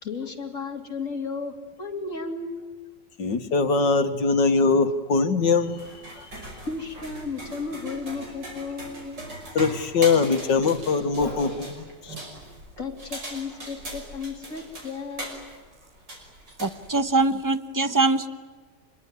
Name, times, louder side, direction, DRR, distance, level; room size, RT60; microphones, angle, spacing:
voice 1, 0.0-2.7 6.7-9.1 12.8-15.4, left 4 dB, 45° left, 3 dB, 3.5 m, -34 dB
voice 2, 3.2-5.9 6.2-6.3 9.6-12.1, left 4 dB, 80° left, 9 dB, 2.2 m, -22 dB
sound 1, 5.7-17.3, right 1 dB, 75° right, 6.3 m, -39 dB
voice 3, 16.6-18.3, right 3 dB, 15° right, 10 dB, 0.9 m, -23 dB
26.0 x 21.5 x 9.7 m, 1.4 s
omnidirectional pair, 1.9 m